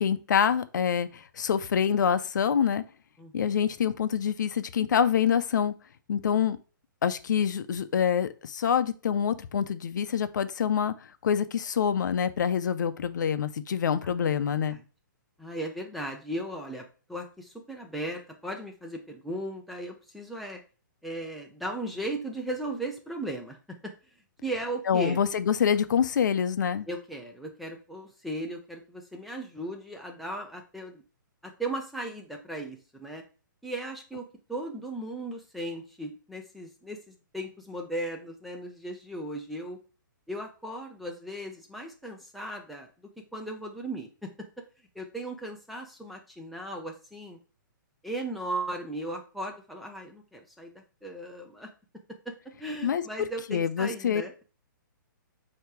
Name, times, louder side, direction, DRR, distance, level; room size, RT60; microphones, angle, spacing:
voice 1, 0.0-2.8 3.3-5.7 6.1-6.6 7.0-10.9 11.2-14.8 24.9-26.9 52.8-53.0 53.5-54.2, left 8 dB, 60° left, 0.6 m, -26 dB
voice 2, 3.2-3.6 14.0-14.8 15.4-20.6 21.0-23.6 23.8-23.9 24.4-25.2 26.9-31.0 31.4-33.2 33.6-39.8 40.3-42.9 43.3-44.3 44.9-47.4 48.0-50.7 51.0-51.7 52.3-52.4 52.6-54.3, right 1 dB, ahead, 0.5 m, -37 dB
8.1 x 2.9 x 4.7 m
hypercardioid pair, 170°, 11 cm